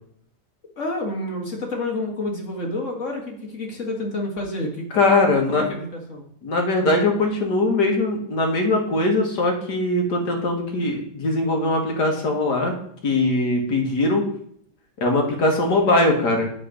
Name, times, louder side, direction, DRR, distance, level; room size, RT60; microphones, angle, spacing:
voice 1, 0.8-4.9 5.7-6.3, left 2 dB, 45° left, 0 dB, 2.0 m, -29 dB
voice 2, 4.9-5.6 6.4-12.7 13.0-14.2 15.0-16.5, left 2 dB, 75° left, 1 dB, 2.1 m, -21 dB
11.0 x 4.2 x 5.1 m, 0.67 s
omnidirectional pair, 1.8 m